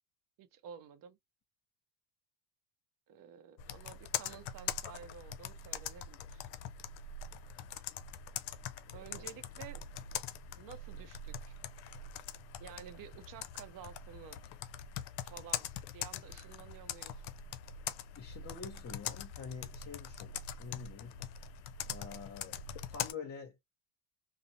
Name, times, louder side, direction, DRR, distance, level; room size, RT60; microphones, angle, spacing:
voice 1, 0.4-1.2 3.1-6.5 8.9-9.8 10.6-11.6 12.6-14.4 15.2-17.2, right 8 dB, 50° right, 0.7 m, -52 dB
Computer keyboard, 3.6-23.1, left 8 dB, 65° left, 0.5 m, -43 dB
voice 2, 18.2-21.2 21.9-23.6, left 5 dB, 35° left, 0.9 m, -47 dB
2.6 x 2.1 x 2.9 m
supercardioid pair, 95°, 42 cm